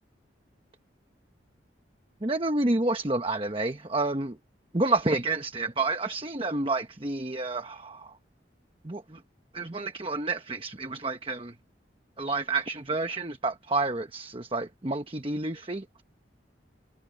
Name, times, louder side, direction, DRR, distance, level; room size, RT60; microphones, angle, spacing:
voice 1, 2.2-4.4 4.7-8.1 8.8-9.2 9.5-11.5 12.2-15.8, right 2 dB, 30° right, 1.0 m, -29 dB
head